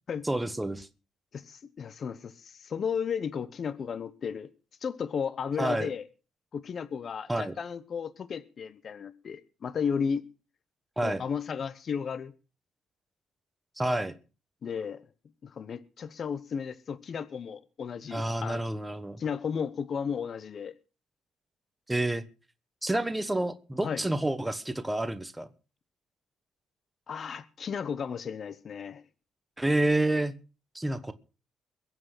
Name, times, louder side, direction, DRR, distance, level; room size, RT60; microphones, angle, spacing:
voice 1, 0.2-0.9 5.6-5.9 7.3-7.5 11.0-11.2 13.8-14.1 18.1-19.2 21.9-22.2 22.8-25.5 29.6-30.3 30.7-31.1, right 1 dB, 10° right, 1.2 m, -29 dB
voice 2, 1.3-4.5 4.8-6.1 6.5-10.2 11.0-12.3 14.6-15.0 15.4-18.6 19.2-20.7 23.8-24.0 27.1-29.0, left 6 dB, 50° left, 1.0 m, -34 dB
22.5 x 7.7 x 5.7 m
cardioid pair, 90°, 0 cm